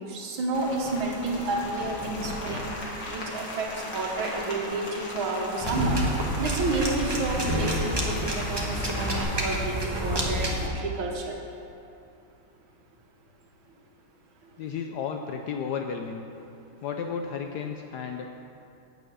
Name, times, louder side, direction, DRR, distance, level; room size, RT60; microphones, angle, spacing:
voice 1, 0.0-2.7 3.1-6.0 6.4-11.4, right 2 dB, 80° right, 0 dB, 2.1 m, -30 dB
Rain, 0.5-9.2, left 1 dB, 60° left, 2.3 m, -37 dB
sound 1, 5.6-10.7, equal, 20° right, 0.8 m, -28 dB
voice 2, 14.6-16.3 16.8-18.3, left 6 dB, 75° left, 4 dB, 0.9 m, -33 dB
9.2 x 8.4 x 6.2 m, 2.7 s
omnidirectional pair, 2.2 m